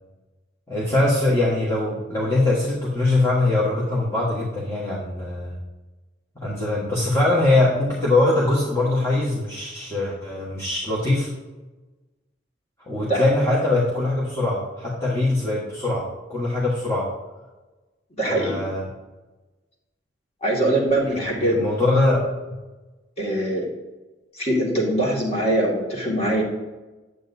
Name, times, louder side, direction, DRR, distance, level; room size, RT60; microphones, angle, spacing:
voice 1, 0.7-5.6 6.3-11.3 12.9-17.1 18.3-18.8 21.0-22.2, left 2 dB, 15° left, -8 dB, 1.5 m, -22 dB
voice 2, 18.2-18.7 20.4-21.6 23.2-23.7 24.3-26.4, right 1 dB, 35° left, -3 dB, 2.3 m, -22 dB
10.0 x 7.9 x 2.7 m, 1.2 s
head